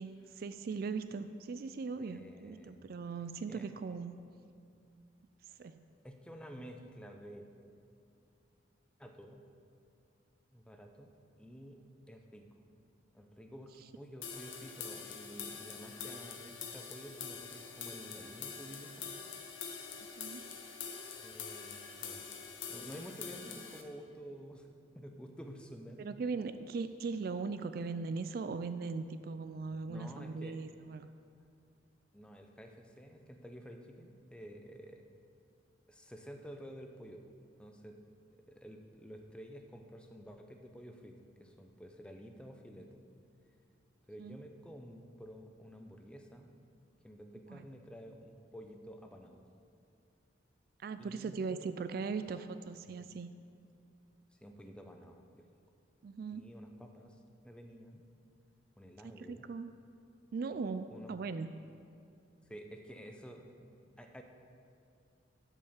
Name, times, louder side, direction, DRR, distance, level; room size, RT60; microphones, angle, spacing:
voice 1, 0.0-4.1 5.4-5.8 20.2-20.6 26.0-31.1 44.2-44.4 47.5-47.7 50.8-53.3 56.0-56.4 59.0-59.7 60.3-61.6, right 4 dB, 50° right, 11 dB, 0.3 m, -39 dB
voice 2, 2.0-2.9 3.5-3.7 6.0-7.5 9.0-9.4 10.5-11.1 11.4-11.8 12.1-12.5 13.1-19.1 21.2-24.7 24.9-26.1 29.9-30.6 32.1-35.0 35.9-37.2 37.6-38.0 38.3-43.0 44.1-46.6 47.0-49.4 51.0-51.7 52.9-53.1 54.4-55.5 56.3-58.0 58.8-59.5 60.6-61.1 62.5-63.7 64.0-64.2, equal, 5° left, 3 dB, 0.6 m, -51 dB
sound 1, 14.2-23.8, left 6 dB, 80° left, 1.0 m, -45 dB
10.5 x 5.4 x 7.2 m, 2.5 s
head